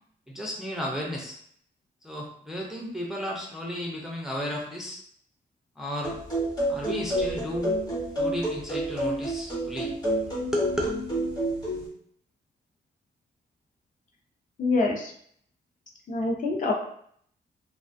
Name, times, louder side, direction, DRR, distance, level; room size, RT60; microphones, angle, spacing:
voice 1, 0.3-1.4 2.0-5.0 5.8-7.7 8.2-9.9 10.5-10.8, equal, ahead, -2 dB, 0.4 m, -33 dB
sound 1, 6.0-11.9, right 1 dB, 20° left, 0.9 m, -29 dB
voice 2, 14.6-15.1 16.1-16.7, left 3 dB, 50° left, -1 dB, 0.6 m, -25 dB
2.5 x 2.2 x 2.5 m, 0.63 s
wide cardioid pair, 135°, 18 cm